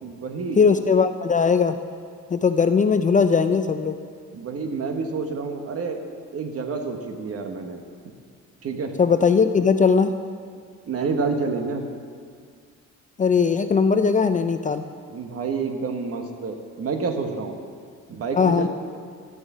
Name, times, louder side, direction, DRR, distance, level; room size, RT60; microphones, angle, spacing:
voice 1, 0.0-0.6 4.3-6.0 6.3-7.8 8.6-9.0 10.9-11.9 15.1-17.6 18.1-18.7, right 4 dB, 50° right, 5 dB, 1.2 m, -28 dB
voice 2, 0.6-1.8 2.3-4.0 9.0-10.1 13.2-14.8 18.4-18.7, left 5 dB, 25° left, 9 dB, 0.4 m, -19 dB
12.0 x 6.3 x 6.0 m, 2.1 s
cardioid pair, 90°, 30 cm